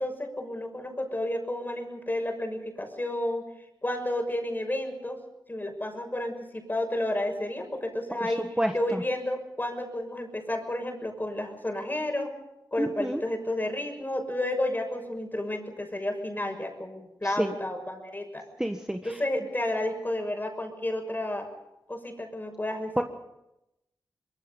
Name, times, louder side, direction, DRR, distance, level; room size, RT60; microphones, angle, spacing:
voice 1, 0.0-3.4 3.8-5.2 5.5-8.5 8.7-12.3 12.7-18.4 19.0-21.5 21.9-23.0, left 1 dB, 25° left, 5 dB, 6.2 m, -31 dB
voice 2, 8.2-9.0 12.8-13.2 17.2-17.5 18.6-19.2 23.0-23.1, right 1 dB, 10° right, 4 dB, 1.6 m, -29 dB
24.5 x 22.0 x 5.5 m, 0.88 s
cardioid pair, 55°, 8 cm